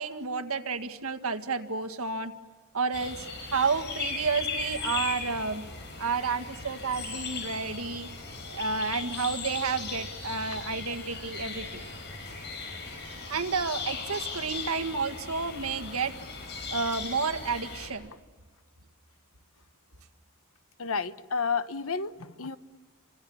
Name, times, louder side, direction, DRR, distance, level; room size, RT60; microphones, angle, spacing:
voice 1, 0.0-2.3 2.7-3.3 3.5-5.6 6.0-8.1 8.5-11.8 13.3-16.1 16.7-18.1, right 4 dB, 75° right, 1.9 m, -31 dB
sound 1, 2.9-17.9, left 4 dB, 55° left, 7.5 m, -38 dB
voice 2, 20.8-22.6, left 5 dB, 70° left, 1.2 m, -31 dB
29.5 x 26.0 x 7.2 m
head